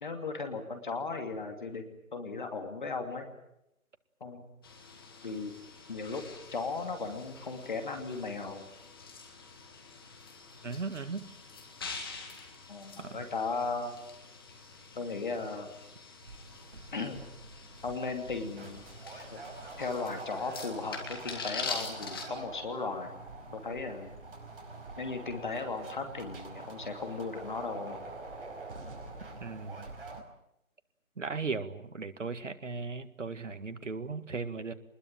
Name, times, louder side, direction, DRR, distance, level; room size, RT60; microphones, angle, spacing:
voice 1, 0.0-3.3 4.2-4.5 5.2-5.5 5.9-6.3 6.5-8.7 12.7-13.9 14.9-15.7 16.9-17.2 17.8-19.4 19.8-23.2 23.5-24.1 25.0-28.0, left 4 dB, 35° left, 6 dB, 2.7 m, -36 dB
sound 1, 4.6-22.2, left 4 dB, 15° left, 1.9 m, -45 dB
voice 2, 10.6-11.3 13.0-13.3 29.4-29.9 31.2-34.7, right 4 dB, 60° right, 10 dB, 2.0 m, -37 dB
sound 2, 16.2-30.2, right 3 dB, 40° right, 5.1 m, -46 dB
24.5 x 21.0 x 9.2 m, 0.82 s
figure-of-eight pair, 165°, 42 cm